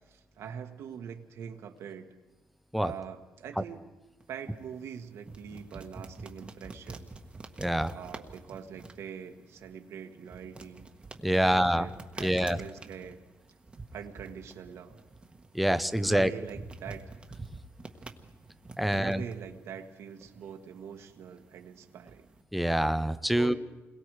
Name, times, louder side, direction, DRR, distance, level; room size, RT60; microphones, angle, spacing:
voice 1, 0.1-2.1 2.8-3.8 4.3-7.1 7.9-10.9 11.4-13.2 13.9-14.9 16.0-17.1 18.9-22.3 23.3-23.5, right 7 dB, 70° right, 4 dB, 1.6 m, -43 dB
sound 1, 4.2-22.4, right 3 dB, 20° right, 1.4 m, -48 dB
voice 2, 7.6-7.9 11.2-11.9 12.2-12.6 15.5-16.3 18.8-19.2 22.5-23.5, equal, ahead, 11 dB, 0.8 m, -26 dB
29.0 x 22.0 x 4.9 m, 1.1 s
cardioid pair, 140°, 5 cm